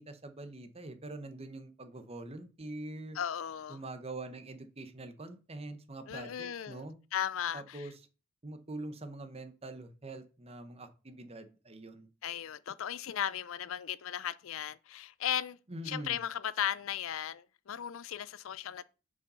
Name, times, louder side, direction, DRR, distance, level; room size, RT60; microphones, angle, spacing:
voice 1, 0.0-3.2 3.7-6.9 7.5-7.9 8.4-12.1 15.7-16.2, right 2 dB, 30° right, 0.9 m, -44 dB
voice 2, 3.1-3.8 6.1-6.8 7.1-7.9 12.2-15.6 15.9-18.8, left 9 dB, 65° left, 0.4 m, -36 dB
6.8 x 5.3 x 5.5 m
head